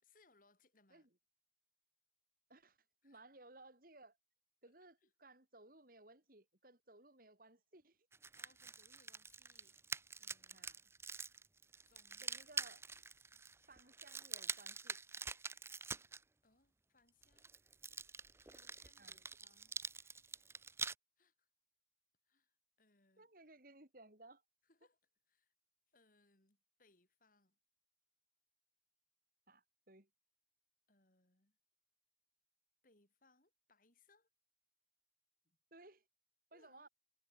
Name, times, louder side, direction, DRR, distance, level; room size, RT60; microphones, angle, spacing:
voice 1, 0.0-1.1 3.0-3.3 4.6-4.7 5.0-5.1 8.3-9.8 10.2-10.7 11.9-12.7 16.4-17.5 18.4-20.3 21.2-21.5 22.2-23.3 24.6-25.0 25.3-25.5 25.9-27.6 30.9-31.6 32.8-34.3 35.4-35.6 36.5-36.9, left 3 dB, 50° left, 5.0 m, -73 dB
voice 2, 3.0-4.2 4.6-8.0 10.5-10.8 12.2-12.8 13.7-15.0 19.0-19.2 23.2-24.4 29.5-30.1 35.7-36.0 36.5-36.9, right 2 dB, 50° right, 4.9 m, -61 dB
sound 1, 8.1-16.2 17.2-20.9, right 4 dB, 15° right, 0.6 m, -46 dB
head